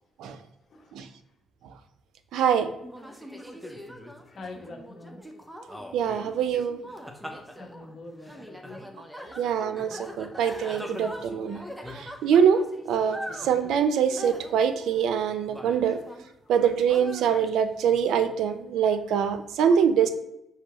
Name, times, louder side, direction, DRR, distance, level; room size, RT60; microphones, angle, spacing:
voice 1, 2.3-2.7 5.9-6.8 9.4-11.6 12.0-12.6 12.9-16.0 16.5-20.1, right 7 dB, 80° right, 9 dB, 0.4 m, -24 dB
sound 1, 2.8-16.3 16.6-17.5, equal, ahead, 0.6 m, -42 dB
voice 2, 4.3-5.2 7.6-8.8 9.2-9.4 10.9-11.0 13.4-13.5 16.4-16.5, left 2 dB, 50° left, 2 dB, 1.0 m, -45 dB
5.8 x 2.7 x 2.8 m, 0.86 s
cardioid pair, 90°, 0 cm